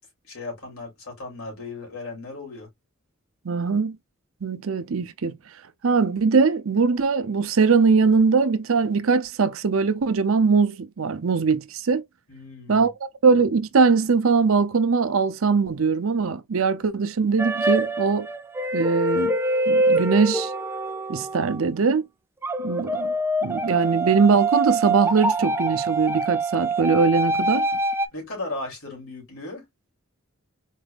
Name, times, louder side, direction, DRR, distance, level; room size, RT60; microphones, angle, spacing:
voice 1, 0.3-2.7 12.3-12.9 28.1-29.6, left 2 dB, 85° left, 2.8 m, -36 dB
voice 2, 3.4-4.0 4.4-5.3 5.8-12.0 12.7-12.9 13.2-18.3 18.7-19.3 19.7-20.5 21.1-22.0 22.6-23.1 23.4-27.7, right 5 dB, 70° right, 0.6 m, -21 dB
sound 1, 17.4-21.7 22.4-28.1, right 2 dB, 10° right, 0.4 m, -25 dB
4.4 x 3.4 x 2.4 m
head